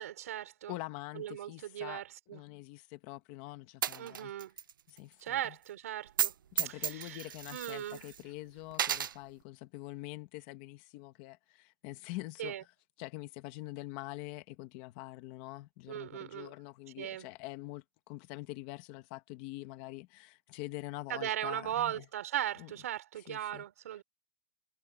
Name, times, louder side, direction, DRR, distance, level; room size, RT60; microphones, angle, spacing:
voice 1, 0.0-0.8 1.2-2.0 2.3-2.4 4.0-4.5 5.2-6.3 6.6-7.2 7.5-8.0 12.4-12.6 15.9-16.5 17.0-17.3 21.1-24.0, right 12 dB, 45° right, 3.9 m, -38 dB
voice 2, 0.7-2.0 2.3-4.3 4.9-5.6 6.5-12.7 13.0-22.0 22.6-22.7 23.2-23.6, left 19 dB, 25° left, 1.4 m, -45 dB
Coin (dropping), 3.8-4.7 5.0-5.1 6.1-6.3 6.6-8.2 8.7-9.1, right 9 dB, 80° right, 0.5 m, -33 dB
hypercardioid pair, 175°, 11 cm